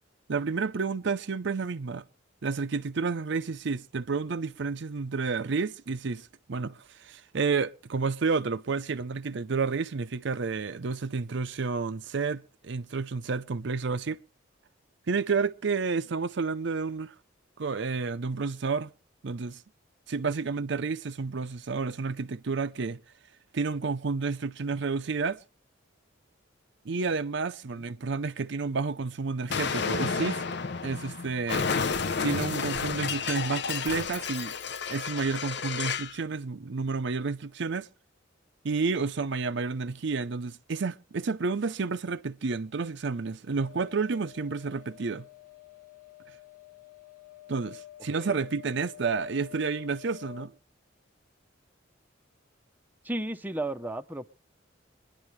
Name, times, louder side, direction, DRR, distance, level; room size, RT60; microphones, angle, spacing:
voice 1, 0.3-2.0 2.4-14.2 15.1-17.2 17.6-18.9 19.2-19.6 20.1-23.0 23.5-25.4 26.8-30.4 30.8-31.7 32.2-34.5 34.9-37.9 38.6-45.3 47.5-50.5, right 4 dB, 60° right, 0.6 m, -30 dB
Explosion, 29.5-36.2, left 5 dB, 60° left, 0.7 m, -31 dB
sound 1, 43.5-50.5, left 13 dB, 45° left, 1.2 m, -49 dB
voice 2, 48.1-48.4 53.0-54.3, right 1 dB, 10° right, 0.7 m, -34 dB
25.0 x 10.5 x 3.2 m
head